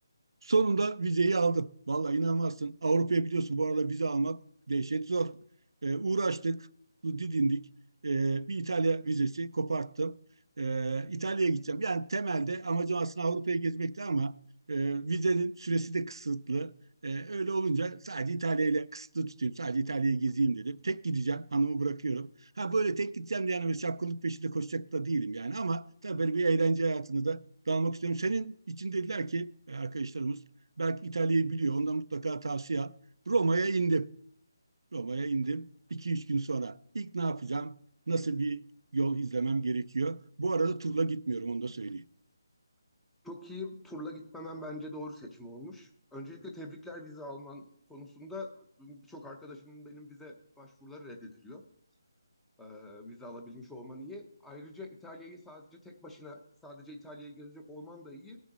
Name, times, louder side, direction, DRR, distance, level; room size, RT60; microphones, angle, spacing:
voice 1, 0.4-4.4 4.7-5.4 5.8-6.7 7.0-7.7 8.0-10.1 10.6-14.4 14.7-16.7 17.0-22.3 22.6-27.4 27.7-30.4 30.8-32.9 33.3-34.1 34.9-37.8 38.1-38.6 38.9-42.0, right 3 dB, 80° right, 0.4 m, -30 dB
voice 2, 43.2-51.6 52.6-58.4, left 1 dB, 5° left, 0.7 m, -45 dB
18.0 x 6.2 x 4.0 m
hypercardioid pair, 170°, 2 cm